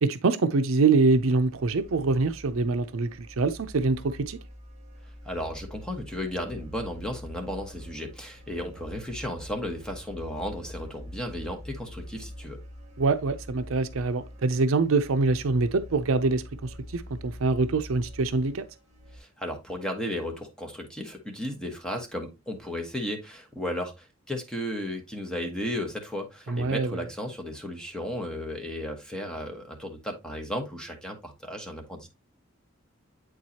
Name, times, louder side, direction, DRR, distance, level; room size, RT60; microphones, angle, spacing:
voice 1, 0.0-4.4 13.0-18.7 26.5-27.0, right 3 dB, 70° right, 0.5 m, -25 dB
sound 1, 1.0-19.2, equal, 35° right, 1.9 m, -45 dB
voice 2, 5.2-12.6 19.1-32.1, left 1 dB, 5° left, 1.1 m, -34 dB
8.0 x 4.6 x 2.8 m
head